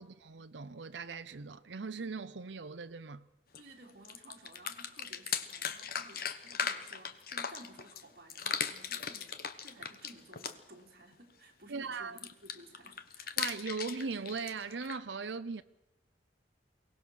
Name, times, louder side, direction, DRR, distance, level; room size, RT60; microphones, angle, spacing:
voice 1, 0.0-3.3 11.7-12.2 13.4-15.6, right 4 dB, 85° right, 0.7 m, -39 dB
sound 1, 3.5-3.6 3.9-8.0 8.3-10.8 12.2-15.0, left 7 dB, 55° left, 1.2 m, -38 dB
voice 2, 3.6-13.4, right 1 dB, 55° right, 3.3 m, -55 dB
23.0 x 18.0 x 6.4 m
head